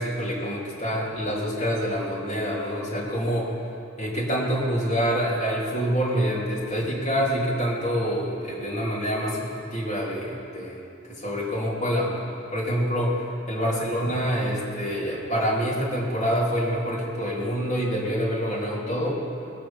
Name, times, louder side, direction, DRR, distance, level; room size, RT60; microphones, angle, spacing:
voice 1, 0.0-3.5 4.0-10.8 11.1-12.1 12.5-19.2, equal, 35° left, -6 dB, 3.4 m, -26 dB
20.5 x 6.8 x 7.2 m, 2.7 s
head